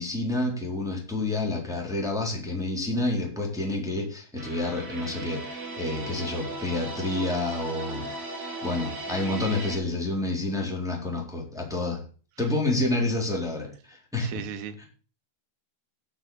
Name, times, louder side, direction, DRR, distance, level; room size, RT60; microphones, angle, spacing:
voice 1, 0.0-8.2 8.6-12.0 12.4-14.4 14.8-14.9, left 2 dB, ahead, 2.8 m, -29 dB
sound 1, 4.4-9.8, right 2 dB, 35° right, 5.0 m, -37 dB
voice 2, 14.2-14.9, right 8 dB, 80° right, 3.7 m, -36 dB
12.0 x 6.3 x 7.7 m
omnidirectional pair, 5.8 m